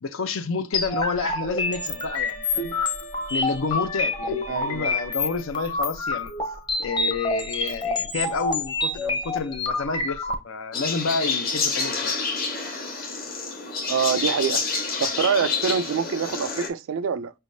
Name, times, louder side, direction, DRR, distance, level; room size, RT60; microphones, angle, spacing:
voice 1, 0.0-2.8 3.3-6.3 6.8-12.2, left 4 dB, 85° left, 0.6 m, -29 dB
sound 1, 0.7-10.3, left 3 dB, 25° left, 0.7 m, -27 dB
sound 2, 1.6-5.7, right 2 dB, 65° left, 1.3 m, -43 dB
voice 2, 4.5-5.0 13.9-14.6 15.0-17.3, right 6 dB, 80° right, 0.4 m, -25 dB
sound 3, 10.7-16.7, left 4 dB, 45° left, 1.0 m, -28 dB
5.4 x 3.4 x 2.6 m
head